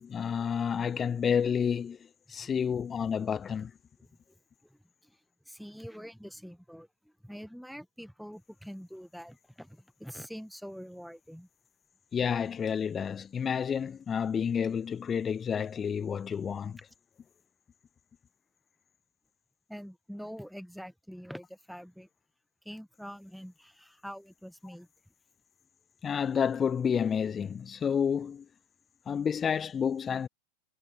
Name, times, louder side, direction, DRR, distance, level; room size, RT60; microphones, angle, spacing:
voice 1, 0.0-2.0 2.3-3.7 12.1-16.8 26.0-28.5 29.1-30.3, left 7 dB, 20° left, 0.4 m, -30 dB
voice 2, 2.4-2.7 4.0-4.4 4.6-5.2 5.5-11.5 19.7-22.1 22.7-24.9, equal, ahead, 1.7 m, -45 dB
figure-of-eight pair, 90°, 0 cm